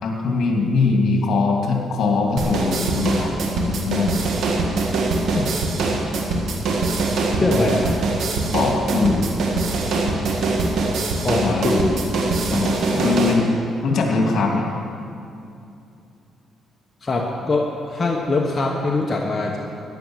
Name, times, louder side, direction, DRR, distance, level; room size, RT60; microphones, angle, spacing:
voice 1, 0.0-4.3 5.3-5.5 8.5-9.3 11.4-11.7 12.5-13.5 13.8-14.7, left 4 dB, 60° left, 0 dB, 2.8 m, -21 dB
sound 1, 2.4-13.3, right 3 dB, 75° right, 1.8 m, -23 dB
voice 2, 7.4-8.0 11.1-12.0 17.0-19.6, left 3 dB, 30° left, 0 dB, 1.2 m, -22 dB
14.0 x 10.5 x 6.4 m, 2.6 s
cardioid pair, 90°, 0 cm